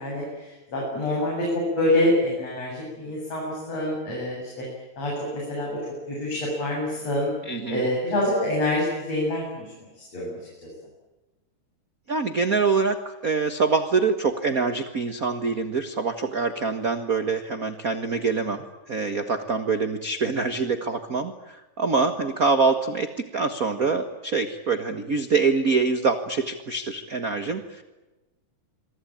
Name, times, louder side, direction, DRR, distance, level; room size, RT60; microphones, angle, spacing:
voice 1, 0.0-4.7 5.0-5.8 6.1-7.3 7.7-10.4, left 1 dB, 50° left, -3 dB, 9.2 m, -26 dB
voice 2, 7.4-7.8 12.1-27.8, right 4 dB, 45° right, 8 dB, 1.1 m, -25 dB
27.0 x 24.5 x 9.0 m, 1.1 s
omnidirectional pair, 3.9 m